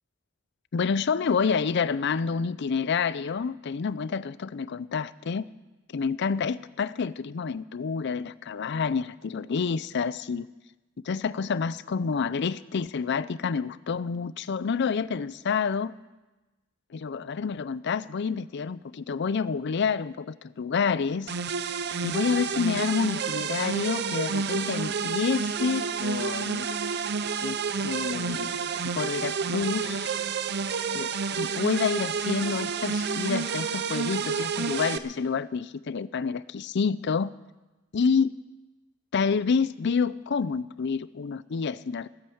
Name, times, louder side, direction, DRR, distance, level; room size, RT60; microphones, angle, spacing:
voice 1, 0.7-5.4 5.9-10.5 11.1-15.9 16.9-21.3 22.0-26.7 27.4-28.5 28.9-30.1 30.9-37.3 37.9-38.3 39.1-42.1, left 5 dB, 60° left, 17 dB, 0.5 m, -28 dB
sound 1, 21.3-35.0, right 5 dB, 55° right, 0.7 m, -30 dB
15.0 x 10.0 x 7.9 m, 1.1 s
head